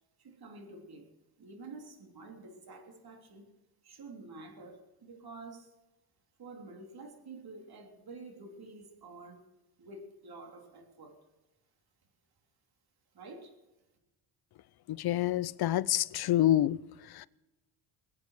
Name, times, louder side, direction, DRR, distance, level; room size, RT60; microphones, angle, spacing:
voice 1, 0.2-1.1 1.4-3.5 3.8-5.7 6.4-9.5 9.8-11.2 13.1-13.5, right 3 dB, 50° right, 3.5 m, -49 dB
voice 2, 15.0-16.8, left 13 dB, 50° left, 0.6 m, -26 dB
21.5 x 8.5 x 6.5 m
cardioid pair, 90°, 48 cm